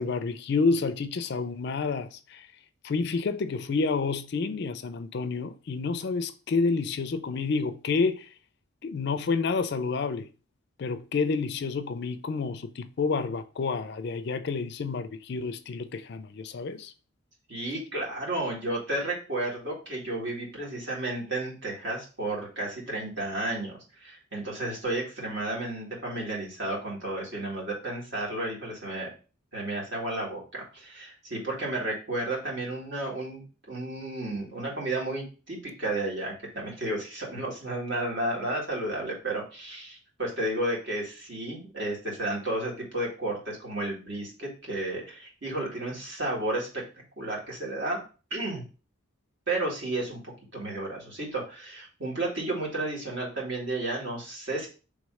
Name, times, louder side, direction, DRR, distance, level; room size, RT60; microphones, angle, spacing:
voice 1, 0.0-2.5 2.8-8.3 8.8-10.3 10.8-16.9, left 4 dB, 50° left, 0.4 m, -29 dB
voice 2, 17.5-29.1 29.5-46.7 47.2-48.0 48.3-48.6 49.5-50.2 50.5-54.7, right 2 dB, 55° right, 1.9 m, -32 dB
3.5 x 3.1 x 4.7 m
head